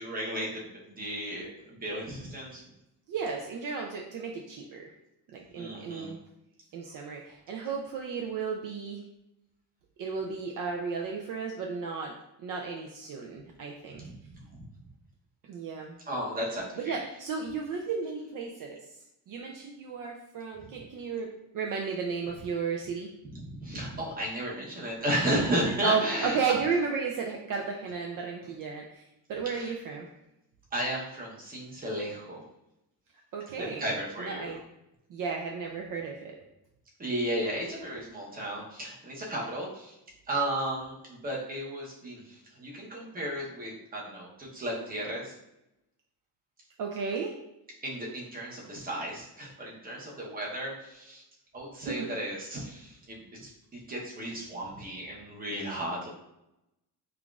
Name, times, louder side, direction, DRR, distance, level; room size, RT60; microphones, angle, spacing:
voice 1, 0.0-2.6 5.6-6.1 14.0-14.1 14.5-14.6 16.1-17.0 23.3-26.4 29.5-29.7 30.7-32.4 33.6-34.6 37.0-40.0 40.3-45.3 47.8-51.2 51.5-56.1, right 1 dB, 20° right, -3 dB, 0.8 m, -34 dB
voice 2, 3.1-4.9 5.3-6.2 6.7-9.0 10.0-14.0 15.4-16.0 16.8-18.8 19.3-23.1 25.8-30.1 33.3-34.6 35.1-36.4 46.8-47.4 51.9-52.1, right 5 dB, 55° right, 0 dB, 0.5 m, -34 dB
5.7 x 2.4 x 2.3 m, 0.86 s
cardioid pair, 175°, 39 cm